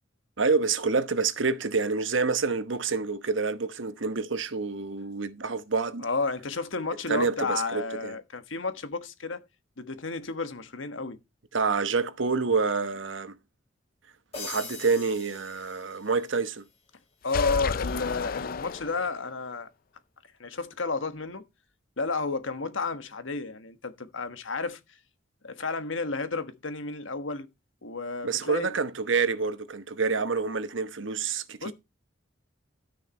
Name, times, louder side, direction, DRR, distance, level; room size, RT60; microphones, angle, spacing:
voice 1, 0.4-6.1 7.1-8.2 11.5-13.4 14.4-16.6 28.2-31.7, right 4 dB, 75° right, 1.1 m, -27 dB
voice 2, 6.0-9.4 9.8-11.2 17.2-19.7 20.4-21.4 22.0-25.0 25.4-27.5 27.8-28.7 31.6-31.7, left 3 dB, 85° left, 1.4 m, -32 dB
sound 1, 14.3-16.4, left 4 dB, 35° left, 7.1 m, -42 dB
sound 2, 17.3-19.3, left 5 dB, 50° left, 0.5 m, -31 dB
12.5 x 6.6 x 4.5 m
head